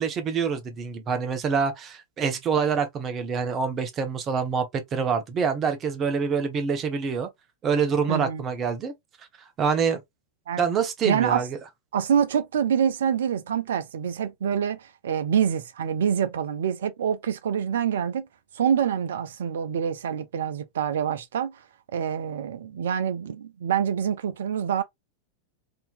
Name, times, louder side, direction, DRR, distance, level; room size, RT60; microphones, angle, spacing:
voice 1, 0.0-7.3 7.6-8.9 9.6-10.0 10.6-11.5, right 6 dB, 30° right, 0.9 m, -26 dB
voice 2, 8.1-8.4 10.5-10.7 11.0-11.4 11.9-18.3 18.5-21.6 21.9-24.8, right 8 dB, 60° right, 0.5 m, -26 dB
3.7 x 2.8 x 2.4 m
figure-of-eight pair, 90°, 0 cm